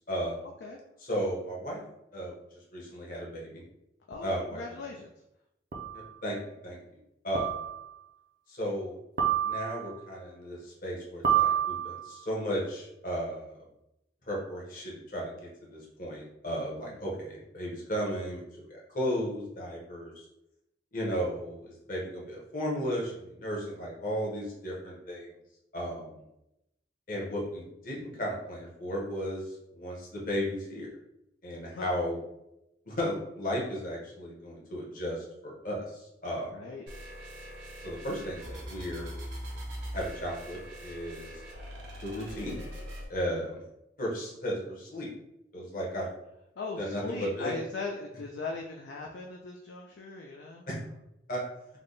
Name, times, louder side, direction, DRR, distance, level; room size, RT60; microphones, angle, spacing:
voice 1, 0.1-0.4 1.0-1.8 2.1-2.3 2.7-3.6 4.2-4.6 5.9-6.4 6.6-6.8 7.2-7.6 8.5-8.9 9.4-13.6 14.3-18.4 18.7-20.3 20.9-25.3 25.7-26.1 27.1-30.9 31.4-32.2 32.9-36.6 37.8-39.1 39.9-41.4 42.0-42.6 43.1-43.6 44.0-45.1 45.5-46.1 46.8-47.5 50.7-50.8 51.3-51.4, equal, 50° left, -4 dB, 1.1 m, -35 dB
voice 2, 4.1-5.1 16.7-17.0 31.7-31.9 36.5-37.0 46.6-50.7, left 3 dB, 70° left, 0 dB, 0.4 m, -39 dB
sound 1, 4.1-4.2 5.7-6.1 7.3-7.9 9.2-9.9 11.2-12.2, right 10 dB, 50° right, 0.5 m, -28 dB
sound 2, 36.9-43.1, equal, 80° right, 1.0 m, -42 dB
3.5 x 2.2 x 3.9 m, 0.85 s
head